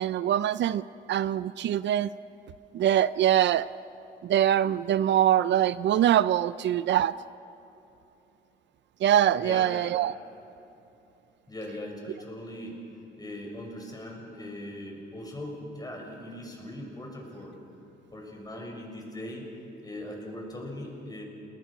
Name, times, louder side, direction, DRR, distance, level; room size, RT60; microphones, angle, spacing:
voice 1, 0.0-2.1 2.7-3.7 4.2-7.1 9.0-10.1, right 11 dB, 65° right, 16 dB, 0.5 m, -23 dB
voice 2, 9.4-9.7 11.5-12.8 13.2-17.5 18.1-19.5 19.8-21.2, left 1 dB, 20° left, 0 dB, 6.8 m, -40 dB
30.0 x 20.0 x 6.1 m, 2.8 s
cardioid pair, 90°, 20 cm